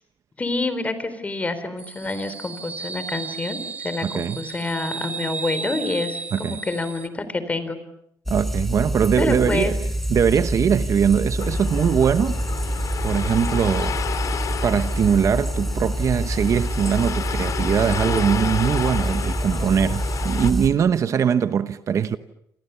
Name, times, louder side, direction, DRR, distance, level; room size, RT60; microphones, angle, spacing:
voice 1, 0.4-7.8 9.2-9.7, left 3 dB, 20° left, 3.9 m, -27 dB
sound 1, 1.8-7.1, right 5 dB, 20° right, 1.7 m, -34 dB
voice 2, 4.0-4.4 6.3-6.6 8.3-12.4 13.0-14.3 14.6-22.2, right 8 dB, 45° right, 1.0 m, -21 dB
sound 2, 8.3-20.7, right 1 dB, 5° left, 4.5 m, -26 dB
sound 3, 11.4-20.5, left 7 dB, 50° left, 2.7 m, -31 dB
28.5 x 27.5 x 7.0 m
cardioid pair, 140°, 7 cm